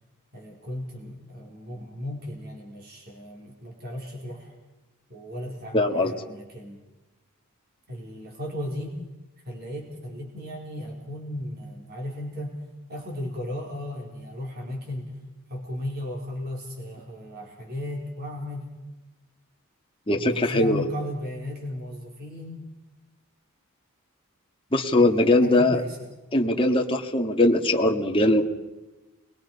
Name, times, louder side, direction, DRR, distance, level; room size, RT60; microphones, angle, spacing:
voice 1, 0.3-4.5 5.1-6.8 7.9-9.0 9.4-12.6 12.9-15.2 15.5-18.7 20.1-22.7 25.0-26.1, left 1 dB, 45° right, -1 dB, 4.4 m, -35 dB
voice 2, 5.7-6.1 20.1-20.9 24.7-25.8 26.3-28.4, left 1 dB, 25° left, 3 dB, 1.8 m, -21 dB
28.5 x 22.0 x 5.4 m, 1.1 s
head